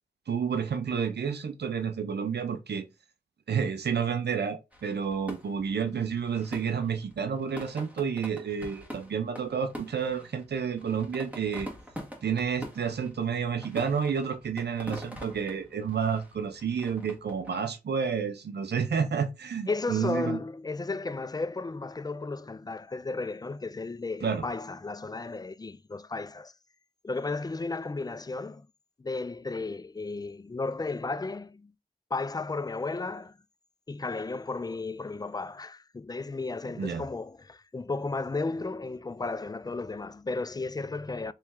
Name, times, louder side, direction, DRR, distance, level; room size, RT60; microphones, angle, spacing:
voice 1, 0.3-2.8 3.5-11.7 12.2-20.4 24.2-24.4 36.8-37.0, right 6 dB, 85° right, 0.6 m, -30 dB
sound 1, 4.7-17.6, equal, 10° right, 1.9 m, -45 dB
voice 2, 19.7-26.5 27.0-28.7 29.0-31.7 32.1-33.4 33.9-41.3, left 3 dB, 25° left, 0.4 m, -34 dB
4.3 x 3.1 x 3.6 m
cardioid pair, 55°, 17 cm